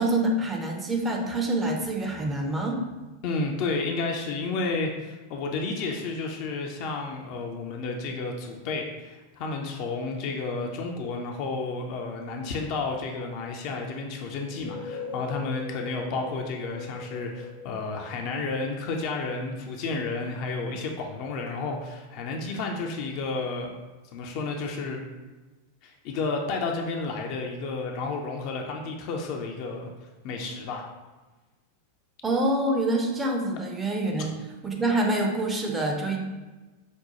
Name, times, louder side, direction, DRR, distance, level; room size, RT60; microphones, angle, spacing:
voice 1, 0.0-2.8 32.2-34.4 34.6-36.2, right 1 dB, 15° right, 1 dB, 0.5 m, -26 dB
voice 2, 3.2-23.7 24.1-25.0 25.8-29.9 30.2-30.8, left 3 dB, 45° left, 2 dB, 0.5 m, -31 dB
sound 1, 14.4-19.0, left 5 dB, 85° right, 0.7 m, -40 dB
5.2 x 2.2 x 2.8 m, 1.2 s
figure-of-eight pair, 90°, 0 cm